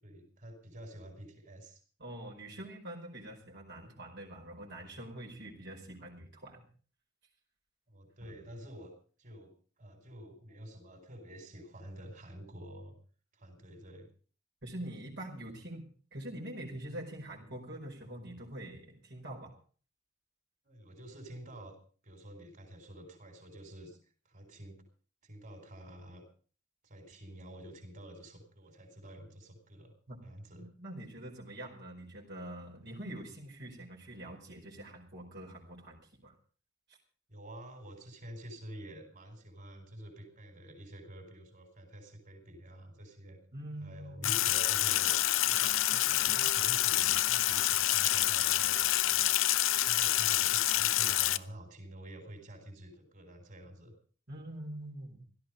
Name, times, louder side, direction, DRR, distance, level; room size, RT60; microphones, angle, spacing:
voice 1, 0.0-1.8 7.9-8.9 9.2-12.9 13.3-14.1 20.6-21.8 22.0-24.0 24.3-24.8 25.2-26.2 26.8-29.9 30.2-30.7 37.3-43.4 43.8-45.1 45.4-49.3 49.8-53.9, right 1 dB, 40° right, 4 dB, 5.4 m, -49 dB
voice 2, 2.0-6.6 14.6-19.5 30.1-30.2 30.5-36.3 43.5-44.4 54.3-55.2, right 1 dB, 60° right, -1 dB, 4.8 m, -45 dB
Sink (filling or washing), 44.2-51.4, left 14 dB, 80° left, 0.7 m, -27 dB
16.5 x 13.5 x 5.2 m, 0.41 s
head